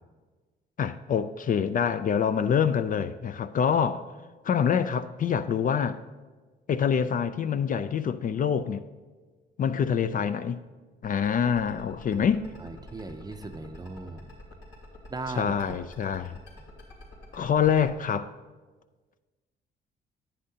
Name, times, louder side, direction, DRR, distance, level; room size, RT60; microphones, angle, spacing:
voice 1, 0.8-4.1 4.4-6.0 6.7-8.8 9.6-10.6 11.0-12.5 15.4-16.4 17.3-18.3, left 7 dB, 45° left, 0.4 m, -26 dB
sound 1, 11.0-17.9, left 2 dB, 70° left, 3.1 m, -47 dB
voice 2, 12.6-14.2 15.1-15.8 16.6-16.7, right 3 dB, 20° right, 0.6 m, -38 dB
10.0 x 8.8 x 2.8 m
cardioid pair, 90°, 20 cm